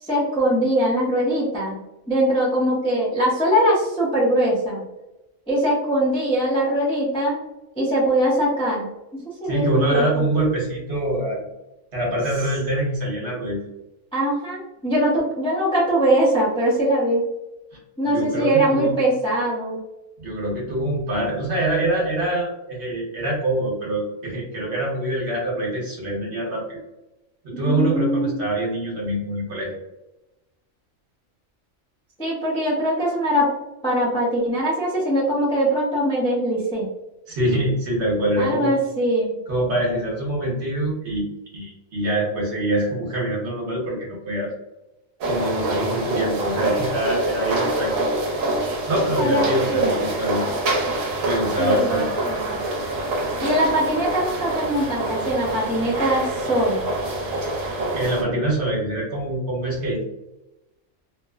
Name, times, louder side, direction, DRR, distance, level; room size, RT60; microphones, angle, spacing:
voice 1, 0.0-1.8 2.1-4.8 5.5-7.4 7.8-8.9 9.4-10.2 14.1-17.2 18.0-19.8 27.5-28.4 32.2-33.5 33.8-36.9 38.4-39.4 49.1-49.9 51.6-52.6 53.4-56.9, right 1 dB, 5° left, -6 dB, 0.4 m, -22 dB
voice 2, 9.4-11.5 11.9-13.7 18.0-18.9 20.2-26.8 27.4-29.8 37.3-38.7 39.5-41.3 41.5-44.5 45.3-48.1 48.9-50.4 51.2-52.1 57.9-60.0, right 1 dB, 55° right, -4 dB, 1.2 m, -24 dB
sound 1, 45.2-58.2, right 1 dB, 75° right, 1.1 m, -26 dB
2.9 x 2.0 x 2.3 m, 0.98 s
omnidirectional pair, 1.4 m